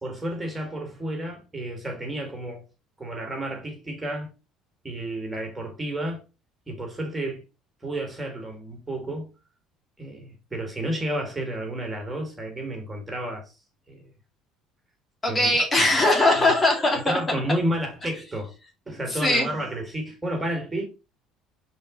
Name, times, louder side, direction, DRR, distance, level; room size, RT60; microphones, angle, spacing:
voice 1, 0.0-2.6 3.0-4.3 4.8-6.2 6.7-7.4 7.8-9.3 10.0-13.5 13.9-14.0 15.3-15.5 16.4-16.5 16.9-18.5 18.9-20.8, right 1 dB, 15° right, 2.6 m, -31 dB
voice 2, 15.2-17.2 19.1-19.5, left 2 dB, 25° left, 2.4 m, -20 dB
5.1 x 4.6 x 4.0 m
hypercardioid pair, 70°, 0 cm